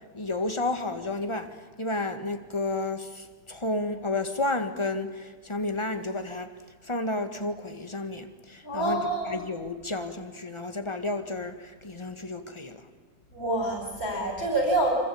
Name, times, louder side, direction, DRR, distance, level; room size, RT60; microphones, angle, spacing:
voice 1, 0.1-1.5 1.8-6.5 6.8-12.9, left 2 dB, 15° left, 7 dB, 1.9 m, -31 dB
voice 2, 8.6-9.4 13.3-14.9, right 2 dB, 50° left, 1 dB, 5.7 m, -27 dB
26.0 x 25.5 x 8.8 m, 1.4 s
omnidirectional pair, 2.0 m